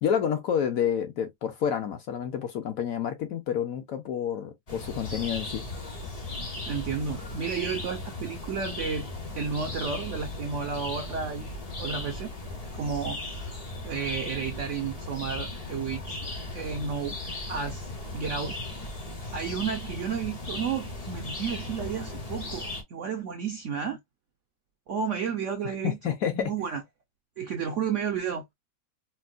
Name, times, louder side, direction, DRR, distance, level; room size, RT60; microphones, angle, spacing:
voice 1, 0.0-5.6 25.8-26.5, left 8 dB, 65° left, 0.9 m, -29 dB
sound 1, 4.7-22.8, left 2 dB, 40° left, 0.5 m, -37 dB
voice 2, 6.7-9.1 9.3-12.3 12.7-13.5 13.8-16.2 16.5-17.2 17.5-18.6 19.3-24.0 24.9-26.8 27.4-28.4, right 6 dB, 70° right, 0.7 m, -32 dB
4.5 x 2.1 x 2.4 m
omnidirectional pair, 1.9 m